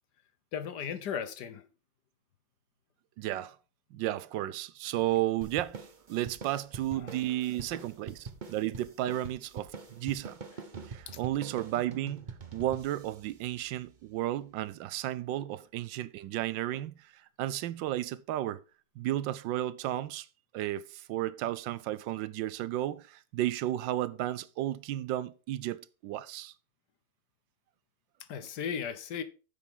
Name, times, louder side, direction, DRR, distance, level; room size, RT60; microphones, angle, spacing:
voice 1, 0.5-1.6 11.1-11.2 28.3-29.2, left 7 dB, 65° left, 1.4 m, -36 dB
voice 2, 3.2-3.6 3.9-10.4 10.9-18.6 19.0-20.3 20.5-26.5, right 14 dB, 80° right, 1.3 m, -33 dB
sound 1, 5.4-14.2, right 5 dB, 35° right, 0.9 m, -45 dB
10.0 x 7.2 x 3.7 m
omnidirectional pair, 2.0 m